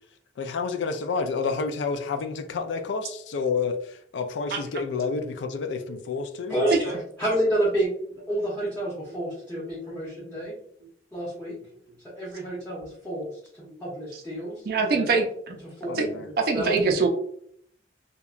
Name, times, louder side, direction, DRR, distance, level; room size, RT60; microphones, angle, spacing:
voice 1, 0.4-6.5 15.9-16.3, left 4 dB, 85° left, 0.3 m, -29 dB
voice 2, 6.5-10.5 11.1-11.6 12.2-13.3 13.5-15.2 15.6-16.0 16.5-16.8, right 1 dB, 10° left, 0.7 m, -29 dB
voice 3, 14.7-15.6 16.0-16.1 16.4-17.1, right 4 dB, 55° right, 0.4 m, -23 dB
2.8 x 2.2 x 2.3 m
head